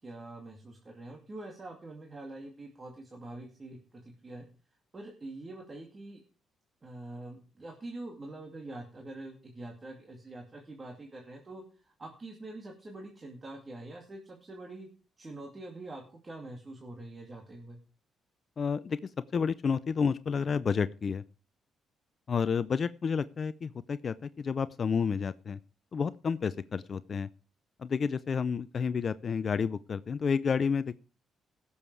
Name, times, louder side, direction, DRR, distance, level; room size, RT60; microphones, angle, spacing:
voice 1, 0.0-4.4 4.9-6.2 6.8-14.9 15.2-17.8, right 2 dB, 30° right, 2 dB, 2.4 m, -45 dB
voice 2, 18.6-19.0 19.3-21.2 22.3-25.6 25.9-27.3 27.8-30.9, left 6 dB, 45° left, 15 dB, 0.5 m, -30 dB
17.0 x 7.1 x 4.7 m, 0.36 s
cardioid pair, 90°, 0 cm